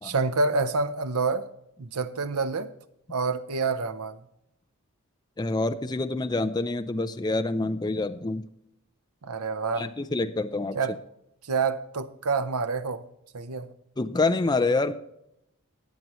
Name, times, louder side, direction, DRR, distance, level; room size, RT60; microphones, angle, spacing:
voice 1, 0.0-1.5 1.8-2.7 3.1-4.2 9.2-9.9 10.7-11.0 11.4-13.0 13.3-13.7, right 4 dB, 90° right, 0.8 m, -27 dB
voice 2, 5.4-8.5 9.8-10.8 14.0-14.9, left 3 dB, 20° left, 0.5 m, -27 dB
18.5 x 7.6 x 3.0 m
head